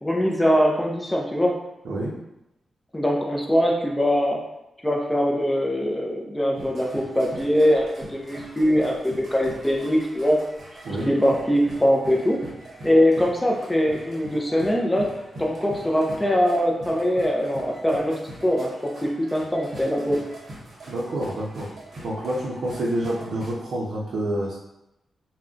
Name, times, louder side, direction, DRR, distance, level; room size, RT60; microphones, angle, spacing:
voice 1, 0.0-1.6 2.9-4.4 4.8-10.4 11.1-12.4 12.8-15.1 15.4-20.2, equal, 10° left, -1 dB, 0.4 m, -22 dB
sound 1, 6.5-23.5, right 1 dB, 50° right, 0.8 m, -42 dB
voice 2, 20.9-21.7 22.0-24.6, right 1 dB, 80° right, -6 dB, 0.5 m, -28 dB
2.4 x 2.1 x 3.7 m, 0.89 s
wide cardioid pair, 170°, 0 cm